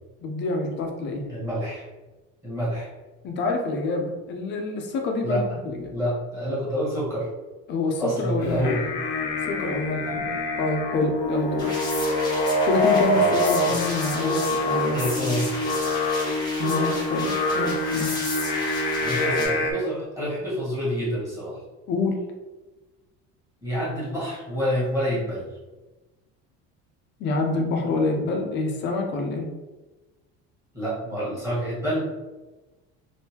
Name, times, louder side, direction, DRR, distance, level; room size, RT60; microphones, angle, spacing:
voice 1, 0.2-1.3 3.2-5.9 7.7-8.7 9.5-11.7 12.6-15.0 16.6-18.2 21.9-22.2 27.2-29.5, left 3 dB, 40° left, 3 dB, 0.5 m, -27 dB
voice 2, 1.3-1.8 2.4-2.9 5.2-5.4 5.9-7.3 8.0-8.9 13.1-13.8 14.9-15.7 19.0-21.6 23.6-25.4 30.7-32.1, equal, 10° right, -9 dB, 1.3 m, -28 dB
Singing, 8.4-19.7, left 1 dB, 90° left, 0.7 m, -25 dB
sound 1, 10.1-13.4, equal, 40° right, 0.8 m, -39 dB
sound 2, 11.6-19.5, left 1 dB, 15° left, 0.9 m, -34 dB
3.5 x 2.5 x 2.8 m, 1.1 s
cardioid pair, 170°, 29 cm